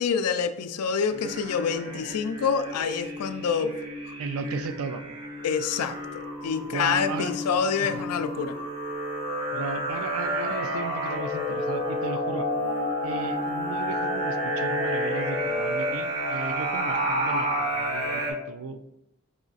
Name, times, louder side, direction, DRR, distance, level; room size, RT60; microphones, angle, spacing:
voice 1, 0.0-3.8 5.4-8.6, left 6 dB, 80° left, 10 dB, 0.4 m, -27 dB
sound 1, 1.1-18.3, right 1 dB, 85° right, 1.6 m, -31 dB
voice 2, 4.2-5.1 6.7-7.3 7.8-8.1 9.5-12.5 13.0-18.8, right 4 dB, 65° right, 9 dB, 0.4 m, -35 dB
sound 2, 11.1-16.0, left 2 dB, 20° left, 0.5 m, -30 dB
4.9 x 2.4 x 3.9 m, 0.81 s
head